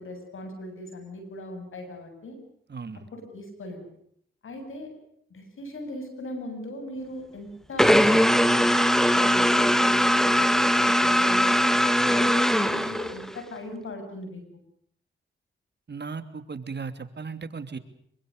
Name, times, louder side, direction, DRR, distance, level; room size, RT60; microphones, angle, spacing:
voice 1, 0.0-2.4 3.1-3.9 4.4-4.9 5.3-11.5 12.0-14.6, left 1 dB, 80° left, 7 dB, 8.0 m, -39 dB
voice 2, 2.7-3.1 15.9-17.8, right 5 dB, 55° right, 10 dB, 3.0 m, -36 dB
sound 1, 7.8-13.4, equal, ahead, 2.0 m, -20 dB
26.5 x 23.5 x 6.7 m, 0.66 s
cardioid pair, 50°, 21 cm